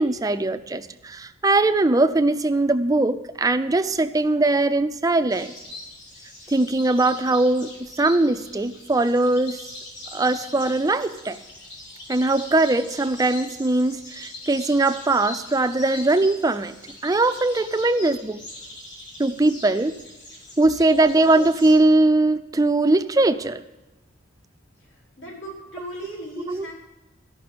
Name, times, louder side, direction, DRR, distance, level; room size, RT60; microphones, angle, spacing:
voice 1, 0.0-5.5 6.5-9.7 10.1-11.4 12.1-16.8 17.0-18.4 19.2-19.9 20.6-23.6 26.4-26.7, right 2 dB, 20° right, 10 dB, 0.4 m, -21 dB
sound 1, 5.3-21.7, left 2 dB, 60° left, 3.9 m, -42 dB
voice 2, 24.8-26.7, equal, 80° left, -5 dB, 4.7 m, -38 dB
13.5 x 5.9 x 8.5 m, 1.1 s
head